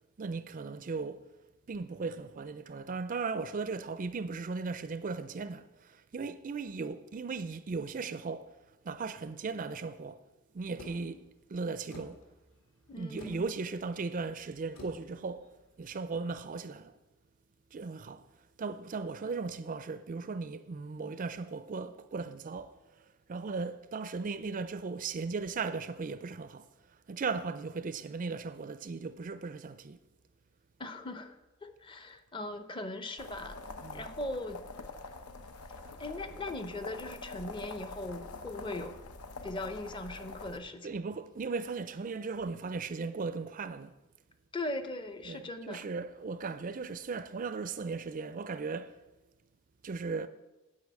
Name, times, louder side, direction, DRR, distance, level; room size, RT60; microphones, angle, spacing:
voice 1, 0.2-1.2 1.7-8.5 8.8-10.2 10.5-12.2 13.0-15.5 15.8-16.9 17.7-18.2 18.6-30.0 33.8-34.1 40.8-43.9 45.2-49.0 49.8-50.3, right 4 dB, 35° right, 0.4 m, -37 dB
sound 1, 10.8-16.4, left 2 dB, 65° left, 2.0 m, -54 dB
voice 2, 12.9-13.4 30.8-33.6 33.9-34.6 36.0-39.0 39.4-40.9 44.5-45.9, left 2 dB, 20° left, 0.6 m, -39 dB
sound 2, 33.2-40.6, left 3 dB, 90° left, 0.8 m, -45 dB
9.6 x 5.5 x 8.2 m
head